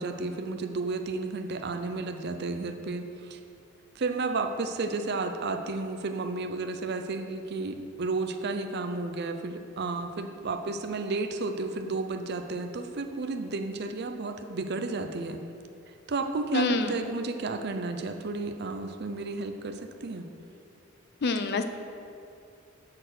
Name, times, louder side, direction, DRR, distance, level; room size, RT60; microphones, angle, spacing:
voice 1, 0.0-3.4 4.0-15.4 16.1-20.3, right 3 dB, 50° right, 6 dB, 0.5 m, -32 dB
voice 2, 16.5-16.9 21.2-21.6, left 3 dB, 50° left, 8 dB, 0.5 m, -26 dB
6.7 x 5.9 x 6.4 m, 2.5 s
head